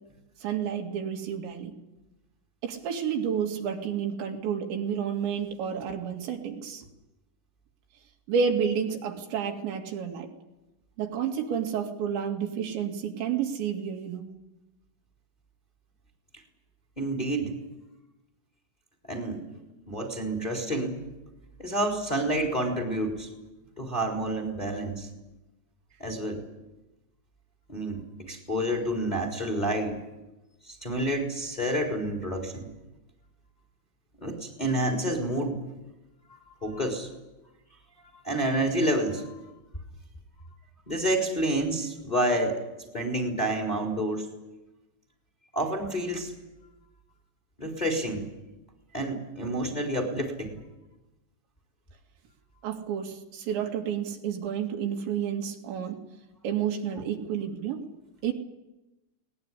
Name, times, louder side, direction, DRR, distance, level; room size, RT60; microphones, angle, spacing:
voice 1, 0.4-1.7 2.6-6.9 8.3-10.3 11.0-14.3 52.6-56.0 56.4-57.8 58.2-58.3, right 7 dB, 75° right, 2 dB, 4.5 m, -30 dB
voice 2, 17.0-17.6 19.1-19.4 19.9-21.1 21.6-23.3 23.8-25.1 26.0-26.4 27.7-30.0 30.7-32.7 34.2-35.6 36.6-37.1 38.2-39.4 40.9-42.6 42.9-44.3 45.5-46.3 47.6-48.3 48.9-50.6 57.0-57.1, right 1 dB, 10° left, 2 dB, 3.5 m, -29 dB
22.0 x 20.0 x 9.8 m, 1.0 s
omnidirectional pair, 5.3 m